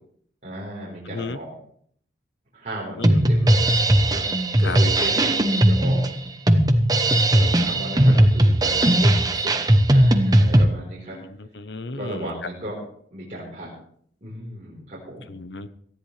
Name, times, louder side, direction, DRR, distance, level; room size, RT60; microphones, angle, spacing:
voice 1, 0.4-1.5 2.5-3.6 4.1-4.2 4.6-6.0 7.3-9.5 9.9-11.2 11.9-12.8 13.1-13.7 14.2-15.3, right 1 dB, 40° right, -5 dB, 4.2 m, -35 dB
voice 2, 1.0-1.4 3.0-3.2 4.6-4.8 8.1-8.2 11.1-12.5 15.3-15.7, left 3 dB, 80° left, 12 dB, 1.0 m, -34 dB
Drum kit, 3.0-10.7, right 1 dB, 20° right, 0.9 m, -18 dB
18.5 x 13.5 x 3.3 m, 0.62 s
head